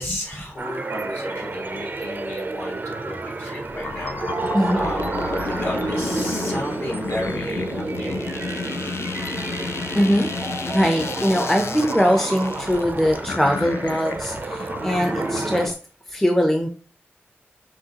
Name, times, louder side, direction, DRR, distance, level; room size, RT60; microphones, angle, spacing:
voice 1, 0.0-4.1 4.4-5.0 5.3-8.3, left 1 dB, 55° left, -1 dB, 1.7 m, -33 dB
sound 1, 0.6-15.7, right 3 dB, 45° right, 0.5 m, -30 dB
sound 2, 3.8-15.7, left 4 dB, 75° left, 0.4 m, -32 dB
voice 2, 4.5-4.9 9.9-10.3 10.7-15.7 16.1-16.7, equal, 5° left, 3 dB, 0.6 m, -21 dB
6.1 x 2.3 x 2.9 m, 0.37 s
wide cardioid pair, 90°, 5 cm